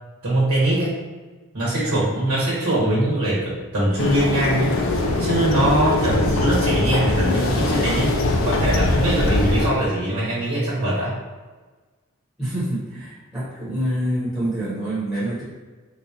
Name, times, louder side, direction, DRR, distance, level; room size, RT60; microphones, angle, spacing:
voice 1, 0.2-1.0 1.5-4.8 5.2-11.1, right 1 dB, 85° right, -7 dB, 1.1 m, -22 dB
sound 1, 4.0-9.7, left 2 dB, 65° left, 0.4 m, -21 dB
voice 2, 12.4-15.4, right 1 dB, 10° right, -11 dB, 0.9 m, -26 dB
3.8 x 2.4 x 2.8 m, 1.3 s
head